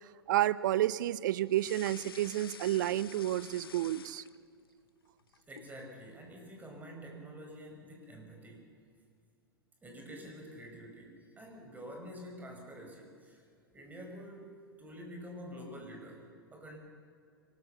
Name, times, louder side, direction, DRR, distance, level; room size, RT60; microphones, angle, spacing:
voice 1, 0.0-4.2, right 13 dB, 55° right, 19 dB, 0.7 m, -30 dB
sound 1, 1.5-4.7 5.1-5.8, left 7 dB, 70° left, 0.7 m, -50 dB
voice 2, 5.5-8.7 9.8-13.5 13.7-16.2 16.5-16.8, equal, 15° right, 1 dB, 5.7 m, -48 dB
25.5 x 19.0 x 6.8 m, 2.2 s
figure-of-eight pair, 95°, 12 cm